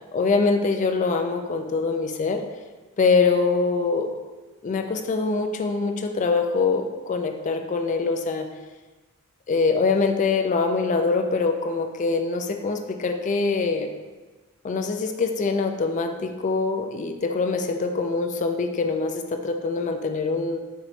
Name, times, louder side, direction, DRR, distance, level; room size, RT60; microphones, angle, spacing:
voice 1, 0.1-2.4 3.0-4.1 4.6-8.5 9.5-13.9 14.6-20.6, left 4 dB, 35° left, 5 dB, 0.3 m, -24 dB
4.5 x 2.6 x 4.2 m, 1.3 s
head